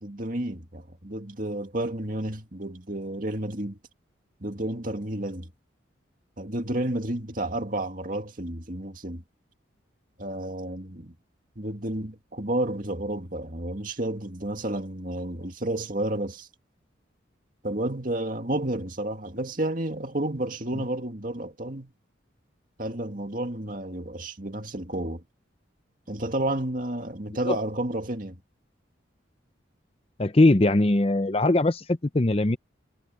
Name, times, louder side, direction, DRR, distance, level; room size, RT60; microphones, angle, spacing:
voice 1, 0.0-3.8 4.4-5.5 6.4-9.2 10.2-11.1 11.6-16.5 17.6-21.9 22.8-25.2 26.1-28.4, right 1 dB, 45° right, 2.2 m, -31 dB
voice 2, 30.2-32.6, left 2 dB, 30° left, 0.7 m, -21 dB
head